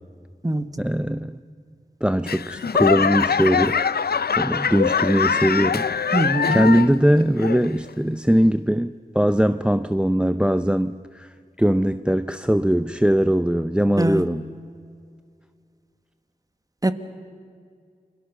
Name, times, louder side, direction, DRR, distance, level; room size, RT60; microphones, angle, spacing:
voice 1, 0.8-1.4 2.0-3.8 4.4-6.1 6.5-14.5, equal, 5° right, 12 dB, 0.6 m, -21 dB
Laughter / Clapping / Crowd, 2.3-7.0 7.4-7.9 8.5-8.6, left 6 dB, 70° left, 0.6 m, -23 dB
voice 2, 6.1-6.6 14.0-14.2 16.8-16.9, right 1 dB, 20° right, 10 dB, 1.6 m, -22 dB
29.5 x 22.5 x 6.6 m, 2.2 s
cardioid pair, 45°, 17 cm